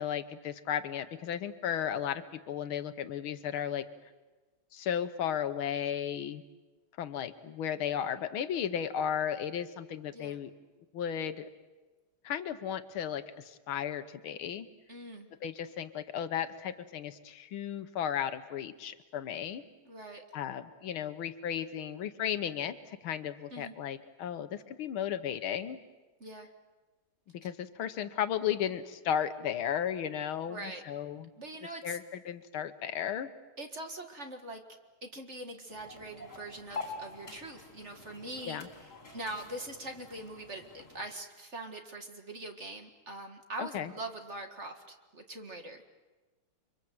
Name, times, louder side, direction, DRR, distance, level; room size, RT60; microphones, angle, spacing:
voice 1, 0.0-3.8 4.7-6.4 7.0-10.5 10.9-11.5 12.2-14.7 15.4-19.6 20.3-25.8 27.4-31.3 31.8-33.3 38.5-38.7 43.6-43.9, left 9 dB, 75° left, 11 dB, 1.8 m, -34 dB
voice 2, 14.9-15.3 19.8-20.2 23.5-23.7 26.2-26.5 30.5-30.8 31.4-32.0 33.6-34.6 35.0-45.9, right 1 dB, 35° right, 4 dB, 2.0 m, -43 dB
sound 1, 35.7-41.0, left 3 dB, 25° left, 4.0 m, -46 dB
30.0 x 24.0 x 7.8 m, 1.2 s
omnidirectional pair, 2.3 m